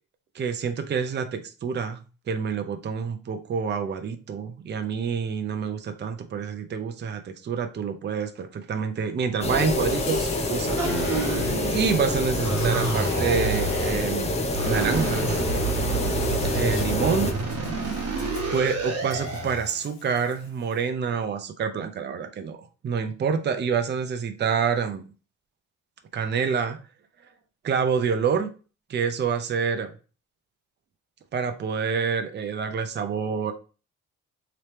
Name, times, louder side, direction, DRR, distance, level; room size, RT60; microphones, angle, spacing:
voice 1, 0.3-2.0 2.3-15.4 16.5-17.3 18.5-25.0 26.1-26.8 27.6-28.5 28.9-29.9 31.3-33.5, right 6 dB, 35° right, 0.5 m, -27 dB
Insect, 9.4-20.8, left 5 dB, 70° left, 0.9 m, -43 dB
sound 1, 9.4-17.3, left 2 dB, 20° left, 0.6 m, -27 dB
sound 2, 10.8-12.1 12.4-14.1 14.5-19.7, right 4 dB, 55° right, 1.0 m, -29 dB
3.2 x 3.0 x 3.0 m
cardioid pair, 90°, 30 cm